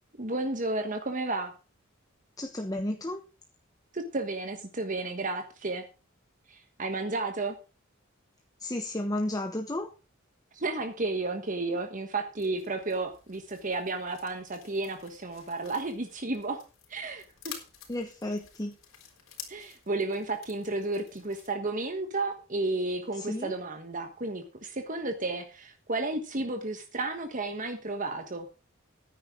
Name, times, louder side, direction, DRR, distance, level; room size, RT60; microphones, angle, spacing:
voice 1, 0.2-1.5 3.9-5.8 6.5-7.5 10.5-16.6 16.9-17.6 19.5-28.4, right 2 dB, 40° right, 6 dB, 1.3 m, -32 dB
voice 2, 2.4-3.2 8.6-9.9 17.9-18.7 23.2-23.5, left 1 dB, 20° left, 5 dB, 1.0 m, -32 dB
sound 1, 12.3-21.5, left 8 dB, 80° left, 3.9 m, -50 dB
14.0 x 10.0 x 3.7 m, 0.32 s
head